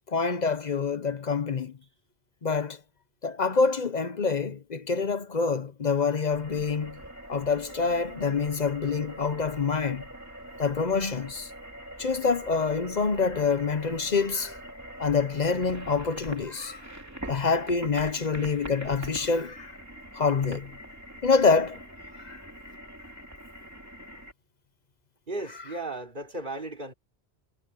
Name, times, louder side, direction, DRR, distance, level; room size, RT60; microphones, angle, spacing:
voice 1, 0.1-1.7 2.4-2.8 3.2-7.0 7.3-10.0 10.6-11.5 12.0-14.6 15.0-16.9 17.3-19.7 20.1-20.7 21.2-21.8 22.2-22.4, left 4 dB, 45° left, 0.9 m, -26 dB
sound 1, 6.3-24.3, right 1 dB, 15° right, 3.1 m, -43 dB
voice 2, 25.3-26.9, right 2 dB, 50° right, 4.3 m, -35 dB
omnidirectional pair, 1.1 m